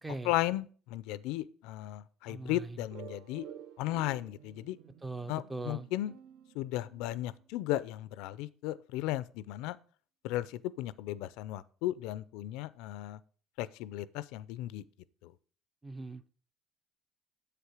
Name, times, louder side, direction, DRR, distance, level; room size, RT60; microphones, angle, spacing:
voice 1, 0.2-3.5 3.8-4.8 5.3-6.2 6.5-9.8 10.2-13.2 13.6-14.8 15.2-15.3, left 15 dB, 90° left, 0.4 m, -35 dB
voice 2, 2.3-2.8 5.0-5.9 15.8-16.2, right 3 dB, 10° right, 0.4 m, -40 dB
sound 1, 2.9-7.5, right 10 dB, 75° right, 0.6 m, -52 dB
7.8 x 6.7 x 4.8 m
cardioid pair, 155°, 0 cm